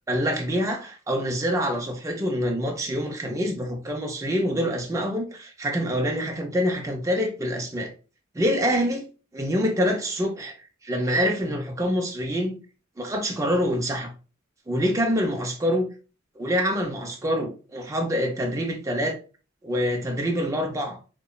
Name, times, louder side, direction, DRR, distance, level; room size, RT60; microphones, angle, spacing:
voice 1, 0.1-7.9 8.3-9.1 9.3-10.5 10.9-12.6 13.0-14.1 14.7-15.9 16.4-19.2 19.6-21.0, equal, 15° right, 0.4 m, -26 dB
2.8 x 2.1 x 2.2 m
head